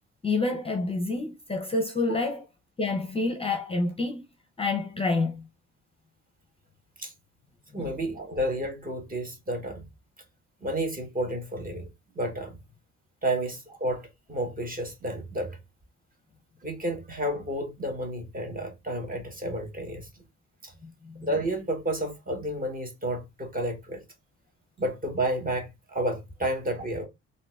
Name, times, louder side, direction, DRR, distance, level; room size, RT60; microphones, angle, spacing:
voice 1, 0.2-2.5 2.8-4.2 4.6-5.5 7.8-7.9 20.8-21.3, left 3 dB, 20° left, 0.7 m, -28 dB
voice 2, 7.7-9.9 10.6-11.9 12.1-12.6 13.2-15.6 16.6-20.1 20.6-20.7 21.2-24.0 24.8-27.1, right 1 dB, 30° right, 1.4 m, -31 dB
3.7 x 2.6 x 2.4 m
cardioid pair, 90°, 30 cm